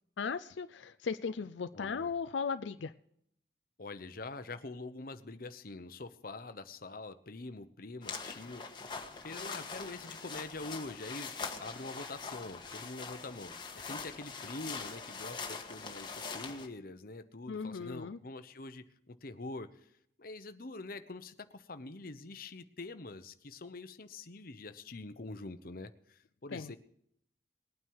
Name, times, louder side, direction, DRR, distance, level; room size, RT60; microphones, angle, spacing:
voice 1, 0.2-2.9 17.5-18.2 26.5-26.8, left 5 dB, 85° left, 11 dB, 0.5 m, -37 dB
voice 2, 1.7-2.1 3.8-8.6 9.2-11.3 11.6-19.9 20.2-26.8, left 2 dB, 50° left, 10 dB, 0.9 m, -45 dB
sound 1, 8.0-16.7, left 5 dB, 25° left, 1.4 m, -43 dB
20.0 x 9.2 x 4.8 m, 0.71 s
head